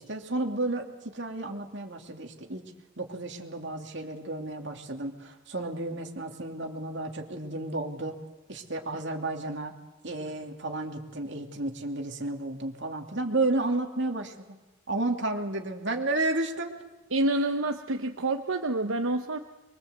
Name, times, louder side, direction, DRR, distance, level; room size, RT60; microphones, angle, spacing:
voice 1, 0.0-2.7 3.0-8.2 8.5-9.7 10.0-14.6 14.9-16.7 17.4-17.5, right 2 dB, 60° right, 3 dB, 2.7 m, -32 dB
voice 2, 17.1-19.4, right 2 dB, 80° right, 5 dB, 1.0 m, -27 dB
23.5 x 23.5 x 8.1 m, 1.1 s
head